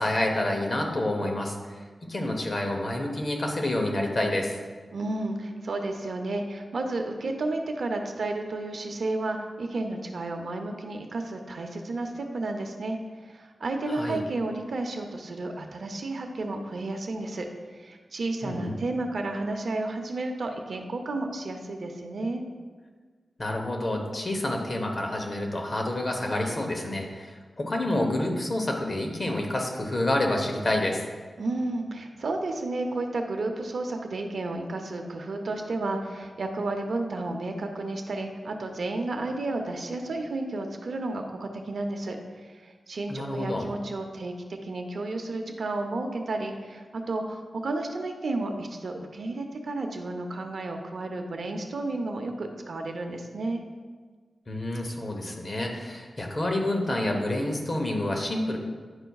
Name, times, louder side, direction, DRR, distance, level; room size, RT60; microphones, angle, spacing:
voice 1, 0.0-4.6 13.9-14.2 18.4-18.8 23.4-31.0 43.1-43.6 54.5-58.6, left 1 dB, 35° left, 2 dB, 0.9 m, -28 dB
voice 2, 4.9-13.0 13.2-17.5 17.7-22.4 31.4-44.3 44.6-53.6, right 2 dB, 70° right, 4 dB, 0.7 m, -32 dB
9.6 x 5.6 x 2.3 m, 1.5 s
wide cardioid pair, 100°, 0 cm